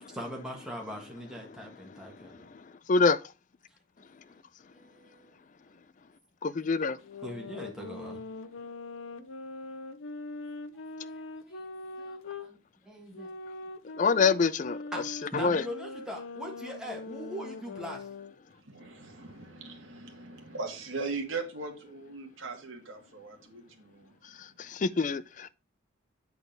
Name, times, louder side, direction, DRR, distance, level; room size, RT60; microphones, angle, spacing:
voice 1, 0.1-2.5 4.3-5.8 6.7-6.9 7.2-8.2 11.0-13.3 14.9-18.1, equal, 5° right, 1.5 m, -42 dB
voice 2, 2.9-3.2 6.4-7.0 14.0-14.8 15.4-15.6 24.7-25.5, left 4 dB, 40° left, 0.3 m, -25 dB
sound 1, 7.0-12.5 13.1-18.3, left 2 dB, 75° left, 0.7 m, -42 dB
voice 3, 18.6-24.1 24.7-24.8, right 4 dB, 75° right, 1.7 m, -39 dB
8.2 x 3.9 x 5.1 m
head